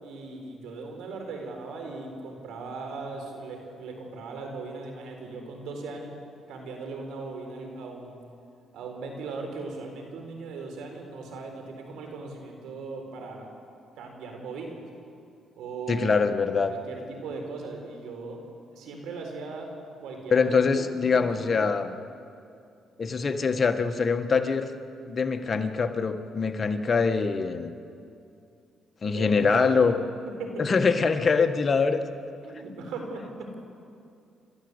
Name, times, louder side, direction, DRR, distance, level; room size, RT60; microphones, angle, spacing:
voice 1, 0.0-6.1 6.5-8.2 8.7-13.5 14.0-14.8 15.6-16.3 16.6-18.4 18.7-19.7 20.0-21.7 29.1-29.8 30.4-30.7 32.4-33.6, right 3 dB, 85° right, 3 dB, 4.1 m, -38 dB
voice 2, 15.9-16.7 20.3-22.0 23.0-24.7 25.0-27.7 29.0-30.0 30.6-32.0, left 5 dB, 40° left, 7 dB, 1.4 m, -24 dB
29.0 x 13.5 x 8.2 m, 2.5 s
cardioid pair, 90°, 0 cm